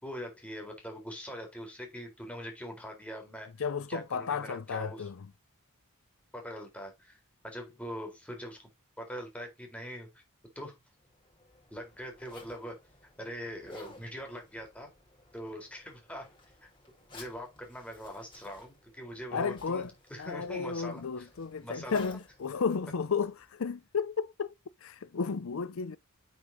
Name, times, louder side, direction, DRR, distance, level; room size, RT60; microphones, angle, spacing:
voice 1, 0.0-3.5 3.9-5.1 6.3-7.2 7.4-8.7 9.0-10.2 10.6-10.8 11.7-12.8 13.2-14.9 15.3-16.3 16.6-16.7 17.1-21.3 21.6-22.0, equal, 5° left, 3.8 m, -42 dB
voice 2, 3.6-5.3 19.3-19.9 20.2-24.5 24.8-26.0, left 5 dB, 70° left, 0.5 m, -33 dB
Zipper (clothing), 11.0-23.6, left 2 dB, 25° left, 4.8 m, -56 dB
8.8 x 6.6 x 2.7 m
head